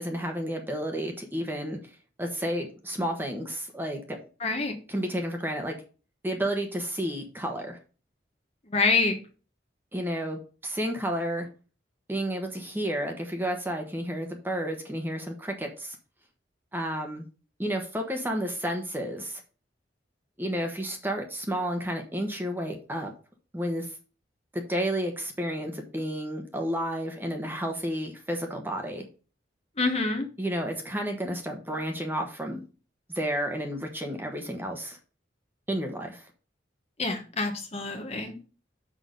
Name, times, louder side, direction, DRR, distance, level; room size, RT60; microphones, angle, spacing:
voice 1, 0.0-1.8 2.2-4.2 4.9-5.8 6.2-7.8 9.9-11.5 12.1-16.0 16.7-17.2 17.6-19.4 20.4-23.1 23.5-23.9 24.5-29.1 30.4-32.6 33.1-35.0 35.7-36.3, equal, 10° right, 3 dB, 1.2 m, -31 dB
voice 2, 4.4-4.8 8.7-9.2 29.8-30.3 37.0-38.5, left 3 dB, 35° left, 5 dB, 1.2 m, -26 dB
6.3 x 6.0 x 5.3 m, 0.35 s
head